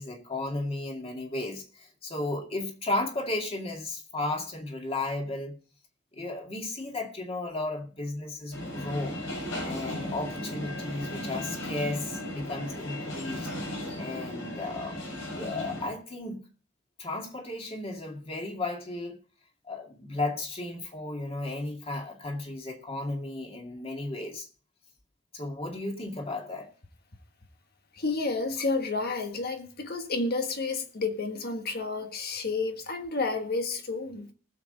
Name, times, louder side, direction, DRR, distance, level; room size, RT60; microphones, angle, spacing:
voice 1, 0.0-5.6 6.1-9.2 9.6-13.5 14.0-15.0 15.3-16.4 17.0-19.2 19.6-24.5 25.3-26.7, left 2 dB, 30° left, 2.2 m, -34 dB
sound 1, 8.5-15.9, left 1 dB, 70° left, 5.8 m, -36 dB
voice 2, 27.9-34.3, left 3 dB, 50° left, 1.6 m, -30 dB
19.0 x 7.4 x 4.0 m
head